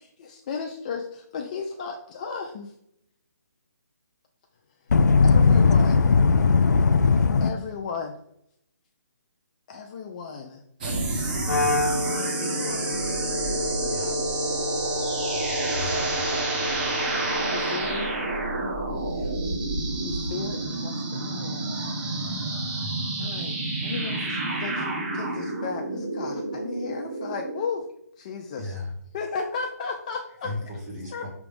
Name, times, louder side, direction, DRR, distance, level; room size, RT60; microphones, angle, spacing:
voice 1, 0.0-2.7 5.2-6.1 7.4-8.2 9.7-13.1 17.5-18.3 20.0-21.7 23.2-23.6 23.8-27.9 28.2-28.7 29.1-30.5 31.1-31.3, left 5 dB, 25° left, 0.5 m, -35 dB
voice 2, 4.9-7.5, left 4 dB, 80° left, 0.5 m, -18 dB
sound 1, 10.8-27.6, right 2 dB, 30° right, 1.2 m, -29 dB
Wind instrument woodwind instrument, 11.4-17.8, left 3 dB, 60° left, 0.8 m, -31 dB
voice 3, 13.9-14.2 15.7-16.3 19.1-19.3 28.6-28.9 30.4-31.3, left 2 dB, 15° right, 1.3 m, -36 dB
5.9 x 3.5 x 5.2 m
hypercardioid pair, 160°, 9 cm